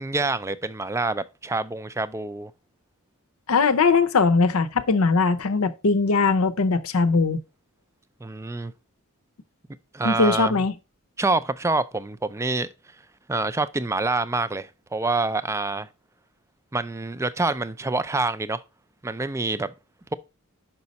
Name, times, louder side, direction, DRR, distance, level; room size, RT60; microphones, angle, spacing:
voice 1, 0.0-2.5 8.2-8.7 9.9-10.6 11.2-12.7 13.3-15.9 16.7-18.6 19.0-19.7, right 3 dB, 15° right, 0.4 m, -26 dB
voice 2, 3.5-7.4 10.0-10.7, left 4 dB, 70° left, 0.7 m, -20 dB
5.8 x 5.3 x 4.0 m
head